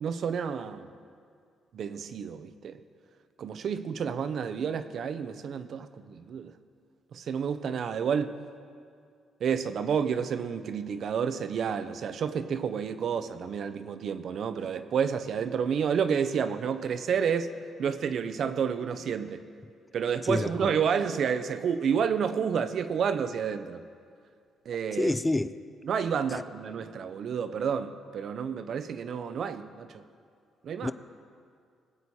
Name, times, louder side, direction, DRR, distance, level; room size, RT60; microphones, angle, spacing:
voice 1, 0.0-0.9 1.7-2.8 3.4-6.5 7.1-8.4 9.4-19.4 19.9-23.8 24.7-25.1 25.9-30.0 30.6-30.9, right 7 dB, 60° right, 0.7 m, -30 dB
voice 2, 20.2-20.7 24.9-25.5 26.3-26.4 30.8-30.9, left 2 dB, 15° left, 0.4 m, -28 dB
20.0 x 8.1 x 4.2 m
cardioid pair, 90°, 0 cm